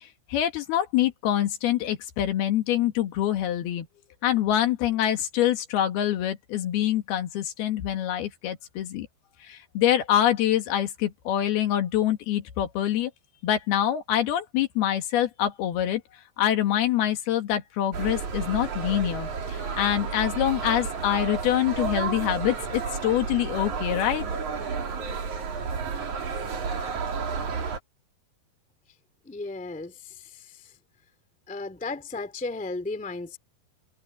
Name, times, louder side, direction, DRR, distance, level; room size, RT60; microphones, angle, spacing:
voice 1, 0.3-3.9 4.2-9.1 9.4-13.1 13.4-16.0 16.4-24.3, left 11 dB, 80° left, 3.7 m, -25 dB
sound 1, 17.9-27.8, right 5 dB, 50° right, 4.4 m, -31 dB
voice 2, 29.2-30.6 31.5-33.4, left 3 dB, 5° left, 1.1 m, -35 dB
omnidirectional pair, 4.5 m